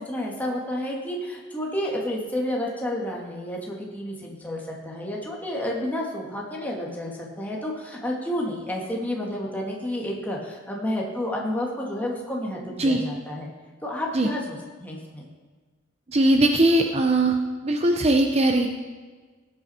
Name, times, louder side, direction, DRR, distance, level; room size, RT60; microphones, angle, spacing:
voice 1, 0.0-7.1 7.4-13.5 13.8-15.2, left 1 dB, 10° left, -2 dB, 2.1 m, -30 dB
voice 2, 16.1-17.4 17.6-18.7, right 1 dB, 30° right, 4 dB, 0.8 m, -20 dB
19.0 x 8.7 x 4.4 m, 1.4 s
head